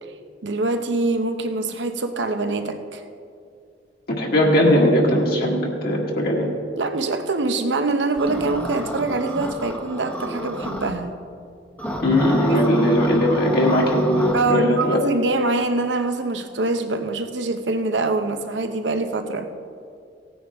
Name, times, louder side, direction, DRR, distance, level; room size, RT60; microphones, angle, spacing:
voice 1, 0.4-3.0 6.8-11.2 12.5-12.9 14.3-19.5, right 2 dB, 85° right, 7 dB, 0.8 m, -24 dB
voice 2, 4.2-6.5 12.0-15.0, equal, 60° left, -2 dB, 1.8 m, -19 dB
Interference Distorted, 8.2-10.9 11.8-14.4, equal, 10° left, 0.8 m, -30 dB
17.0 x 9.2 x 3.6 m, 2.4 s
head